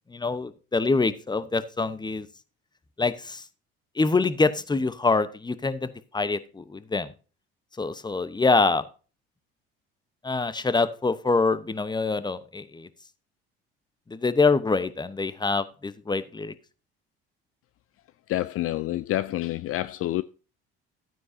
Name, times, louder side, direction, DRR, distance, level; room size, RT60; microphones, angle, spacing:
voice 1, 0.1-2.3 3.0-3.4 4.0-7.1 7.8-8.8 10.2-12.9 14.1-16.5, left 3 dB, 15° left, 0.9 m, -25 dB
voice 2, 18.3-20.2, left 15 dB, 50° left, 0.4 m, -28 dB
12.5 x 9.4 x 2.7 m
hypercardioid pair, 65°, 29 cm